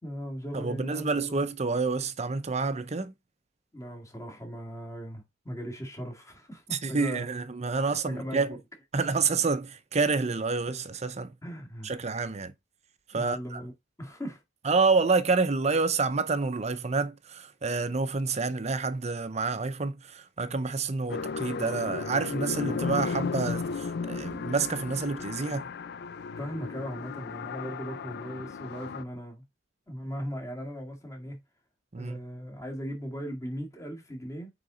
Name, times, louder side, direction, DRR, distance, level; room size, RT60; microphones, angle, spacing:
voice 1, 0.0-1.5 3.7-7.3 7.9-8.6 11.4-11.9 13.1-13.7 14.0-14.4 26.4-29.4 29.9-31.4 32.0-34.5, equal, 15° left, 2.0 m, -38 dB
voice 2, 0.5-3.1 6.7-8.6 8.9-11.3 11.8-12.5 13.1-13.6 14.6-25.7 31.9-32.2, right 4 dB, 35° right, 0.7 m, -28 dB
sound 1, 21.1-29.0, left 5 dB, 60° left, 0.4 m, -34 dB
9.0 x 3.9 x 3.9 m
head